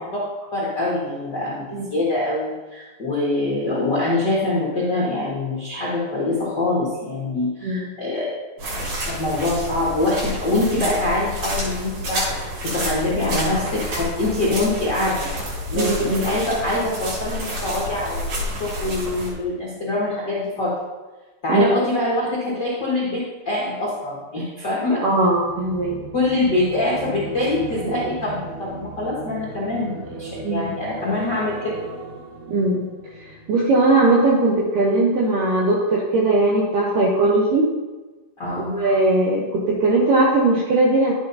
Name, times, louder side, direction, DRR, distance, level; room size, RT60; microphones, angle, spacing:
voice 1, 0.5-1.6 1.9-8.3 9.0-15.3 15.7-18.3 18.6-20.7 21.4-25.0 26.1-31.7 38.4-38.8, left 2 dB, 85° left, -7 dB, 0.9 m, -24 dB
sound 1, 8.6-19.3, equal, 55° right, 4.1 m, -29 dB
voice 2, 15.7-16.2 21.5-21.7 25.0-26.0 27.8-27.9 30.4-30.7 32.5-32.8 33.2-37.7 38.7-41.1, right 2 dB, 85° right, -4 dB, 1.8 m, -19 dB
sound 2, 25.1-34.5 34.8-35.1, right 3 dB, 70° right, 3.3 m, -37 dB
11.5 x 8.8 x 2.8 m, 1.2 s
omnidirectional pair, 5.4 m